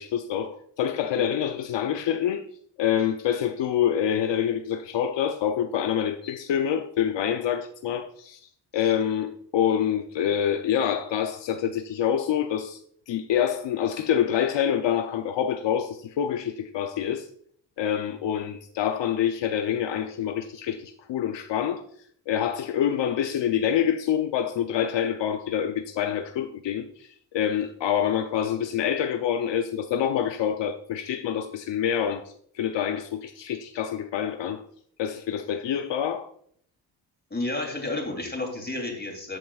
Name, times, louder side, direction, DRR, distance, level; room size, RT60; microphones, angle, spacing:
voice 1, 0.0-2.4 2.8-8.4 8.7-12.8 13.1-17.3 17.8-21.8 22.3-32.2 32.5-34.6 35.0-36.3, left 9 dB, 75° left, 0.7 m, -26 dB
voice 2, 37.3-39.4, left 2 dB, 25° left, 3.1 m, -31 dB
13.0 x 7.6 x 2.4 m
cardioid pair, 75°, 43 cm